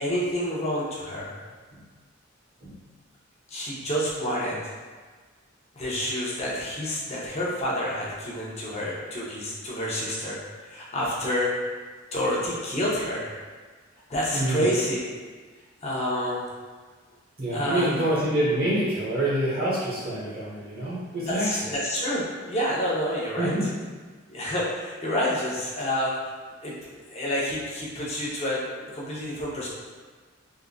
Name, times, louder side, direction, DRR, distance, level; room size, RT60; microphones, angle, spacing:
voice 1, 0.0-1.4 3.5-4.6 5.7-10.4 10.6-11.5 12.1-13.4 14.1-15.1 15.8-16.5 17.5-18.0 21.2-23.5 24.3-26.1 26.6-26.7 27.1-29.7, equal, 35° left, -6 dB, 0.7 m, -28 dB
voice 2, 14.3-14.6 17.4-21.5 23.4-23.7, right 1 dB, 50° right, -7 dB, 1.0 m, -26 dB
3.5 x 2.4 x 2.2 m, 1.4 s
head